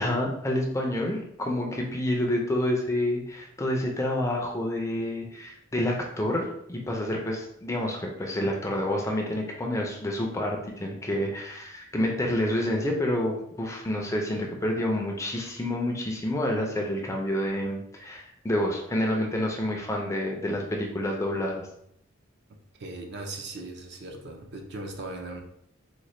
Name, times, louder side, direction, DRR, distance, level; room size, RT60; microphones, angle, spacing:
voice 1, 0.0-21.6, left 1 dB, 15° left, 0 dB, 0.4 m, -28 dB
voice 2, 22.8-25.4, right 2 dB, 55° right, 2 dB, 0.5 m, -38 dB
3.9 x 2.1 x 3.1 m, 0.72 s
head